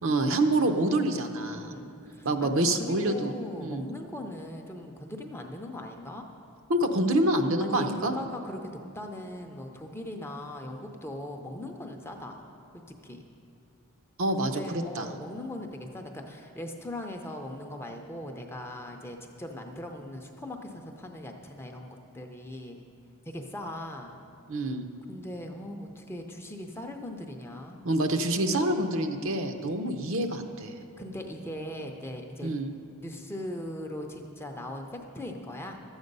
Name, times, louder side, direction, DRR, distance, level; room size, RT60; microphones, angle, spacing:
voice 1, 0.0-1.7 2.2-3.8 6.7-8.1 14.2-15.1 24.5-24.9 27.8-30.7 32.4-32.7, right 1 dB, 65° right, 6 dB, 0.7 m, -27 dB
voice 2, 1.5-6.3 7.6-12.4 13.0-13.2 14.3-22.8 23.3-24.1 25.1-27.8 31.0-32.6 33.0-35.8, left 1 dB, 10° left, 3 dB, 0.6 m, -39 dB
12.5 x 8.0 x 5.4 m, 2.6 s
head